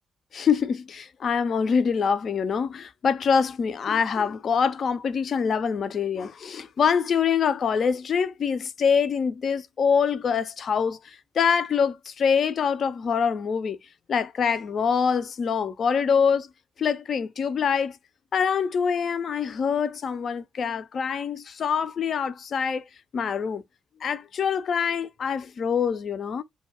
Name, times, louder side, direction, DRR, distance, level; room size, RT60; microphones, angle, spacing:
voice 1, 0.3-11.0 11.4-13.8 14.1-16.5 16.8-17.9 18.3-22.8 23.1-23.6 24.0-26.4, left 6 dB, 55° left, 0.4 m, -25 dB
2.1 x 2.1 x 3.4 m
hypercardioid pair, 40°, 0 cm